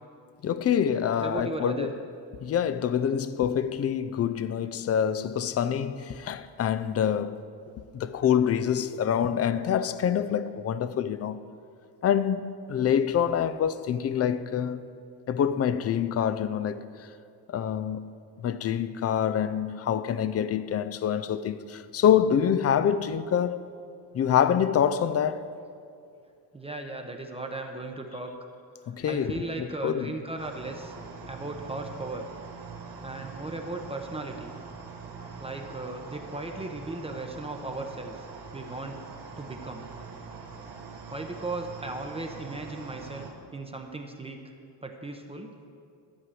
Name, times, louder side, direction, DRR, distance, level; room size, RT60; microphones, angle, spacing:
voice 1, 0.4-1.9 2.4-7.4 7.9-11.4 12.0-14.8 15.3-16.8 17.5-18.1 18.4-23.6 24.1-25.5 28.9-30.1, left 8 dB, 35° left, 0.4 m, -26 dB
voice 2, 1.1-1.9 26.5-28.3 29.1-31.0 31.3-32.2 33.0-34.5 35.4-38.2 38.5-39.0 39.4-39.9 41.1-44.4 44.8-45.5, right 2 dB, 15° right, 0.7 m, -36 dB
sound 1, 30.4-43.3, right 5 dB, 70° right, 1.8 m, -43 dB
12.5 x 4.8 x 7.6 m
cardioid pair, 105°, 42 cm